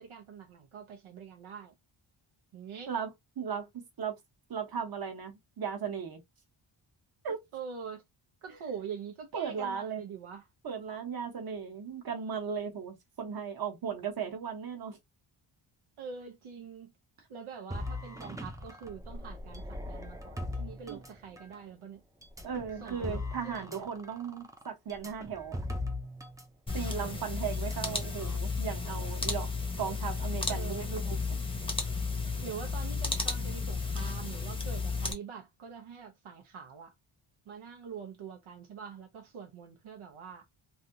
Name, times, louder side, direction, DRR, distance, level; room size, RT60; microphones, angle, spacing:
voice 1, 0.0-1.7 2.5-2.9 7.5-8.0 8.4-10.5 16.0-16.9 17.3-22.0 22.8-23.9 26.9-27.2 30.5-30.9 32.4-36.9 37.5-40.5, right 6 dB, 75° right, 0.8 m, -44 dB
voice 2, 3.4-3.7 4.0-4.1 4.5-6.2 7.2-7.4 9.3-10.0 10.6-15.0 20.9-21.0 22.4-25.6 26.7-29.5 29.8-31.4, right 7 dB, 45° right, 1.1 m, -36 dB
sound 1, 17.7-21.6 22.2-26.4 26.7-26.9 27.5-28.4, left 1 dB, 5° right, 0.4 m, -40 dB
sound 2, 26.7-35.1, left 4 dB, 10° left, 0.8 m, -33 dB
3.3 x 2.7 x 2.6 m
wide cardioid pair, 145°, 50 cm